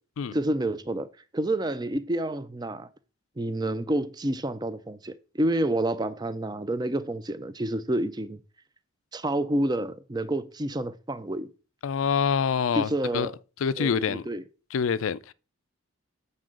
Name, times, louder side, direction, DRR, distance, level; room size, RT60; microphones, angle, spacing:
voice 1, 0.3-1.1 1.3-2.9 3.4-8.4 9.1-11.5 12.7-13.3 13.8-14.4, right 1 dB, 20° right, 0.4 m, -29 dB
voice 2, 11.8-13.3 13.6-14.3 14.7-15.3, left 6 dB, 75° left, 0.4 m, -26 dB
7.6 x 5.4 x 3.7 m
head